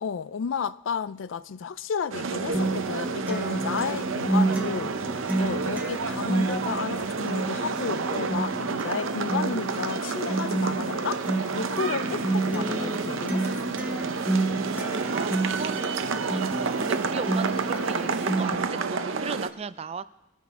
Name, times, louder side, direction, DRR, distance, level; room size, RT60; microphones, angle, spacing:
voice 1, 0.0-4.9 5.4-11.2 11.5-13.7, left 6 dB, 65° left, 0.4 m, -32 dB
sound 1, 2.1-19.5, right 4 dB, 70° right, 0.7 m, -30 dB
Acoustic guitar, 2.5-18.5, right 2 dB, 10° right, 1.0 m, -30 dB
voice 2, 14.5-15.8 16.1-20.0, right 5 dB, 30° right, 0.3 m, -36 dB
22.0 x 9.1 x 3.7 m
head